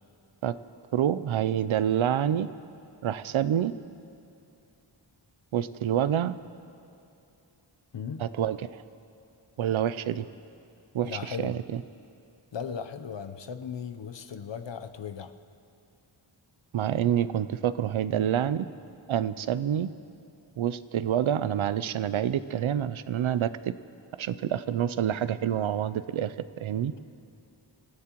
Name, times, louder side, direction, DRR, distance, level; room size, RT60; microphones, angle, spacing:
voice 1, 0.9-2.5 3.0-3.7 5.5-6.4 8.2-8.8 9.6-10.2 10.9-11.8 16.7-18.7 19.1-19.9 20.6-23.7 24.2-26.9, right 10 dB, 85° right, 14 dB, 0.6 m, -27 dB
voice 2, 7.9-8.2 11.0-11.6 12.5-15.3, left 7 dB, 65° left, 9 dB, 0.8 m, -37 dB
25.5 x 14.5 x 3.0 m, 2.6 s
wide cardioid pair, 95°, 47 cm